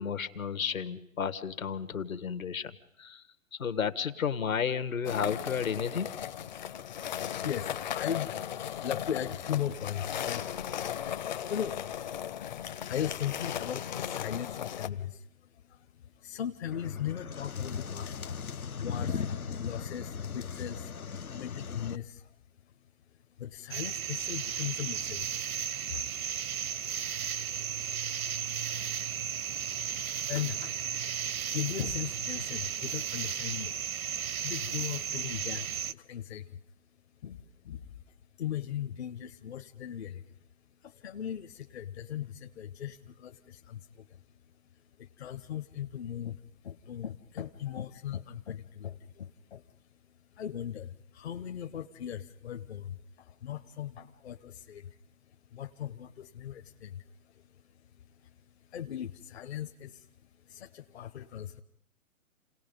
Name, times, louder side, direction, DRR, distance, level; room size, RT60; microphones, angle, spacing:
voice 1, 0.0-3.2 3.5-6.1, left 7 dB, 70° left, 12 dB, 1.5 m, -32 dB
sound 1, 5.0-14.9, left 10 dB, 35° left, 0.7 m, -37 dB
voice 2, 6.9-22.3 22.7-22.8 23.4-26.1 29.1-36.6 37.2-38.0 38.4-40.4 40.8-44.2 44.7-49.9 50.3-58.4 58.7-61.6, left 10 dB, 50° left, 6 dB, 0.9 m, -39 dB
sound 2, 16.7-22.0, left 6 dB, 85° left, 1.0 m, -37 dB
sound 3, 23.7-35.9, right 8 dB, 75° right, 0.7 m, -34 dB
29.0 x 18.0 x 5.3 m, 0.75 s
figure-of-eight pair, 140°, 42 cm